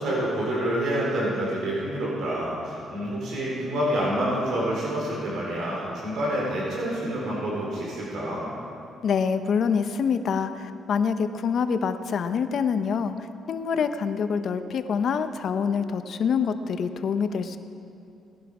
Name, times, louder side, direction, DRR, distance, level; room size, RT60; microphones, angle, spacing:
voice 1, 0.0-8.4, right 1 dB, 75° right, -5 dB, 4.1 m, -27 dB
voice 2, 9.0-13.1 13.5-17.6, left 6 dB, 60° left, 9 dB, 0.8 m, -26 dB
18.5 x 11.0 x 4.9 m, 2.6 s
cardioid pair, 90°, 0 cm